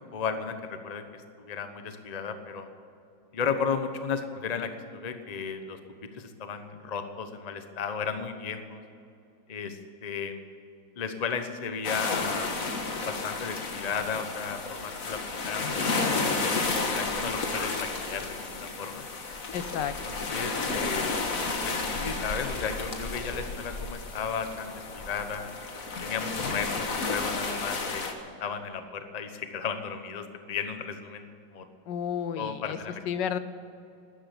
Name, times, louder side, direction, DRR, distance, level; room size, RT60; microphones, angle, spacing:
voice 1, 0.0-2.7 3.3-5.8 6.1-8.8 9.5-10.4 11.0-12.5 13.0-19.1 20.0-21.1 21.6-25.5 26.0-31.7 32.3-33.0, left 6 dB, 30° left, 8 dB, 0.8 m, -34 dB
sound 1, 11.8-28.1, left 3 dB, 50° left, 1.8 m, -32 dB
voice 2, 19.5-20.2 31.9-32.8 33.1-33.4, left 8 dB, 75° left, 12 dB, 1.4 m, -32 dB
13.0 x 10.5 x 9.8 m, 2.7 s
omnidirectional pair, 2.0 m